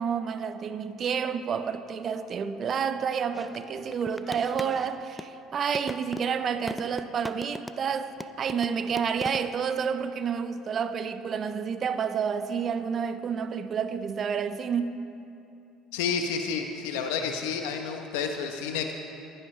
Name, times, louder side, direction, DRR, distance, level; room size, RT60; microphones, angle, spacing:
voice 1, 0.0-14.9, right 7 dB, 45° right, 0.7 m, -29 dB
sound 1, 3.3-5.4 5.7-7.9 8.2-9.6, left 1 dB, 5° left, 0.4 m, -40 dB
voice 2, 15.9-18.9, left 6 dB, 85° left, 1.0 m, -30 dB
20.0 x 9.0 x 3.3 m
supercardioid pair, 80°, 0 cm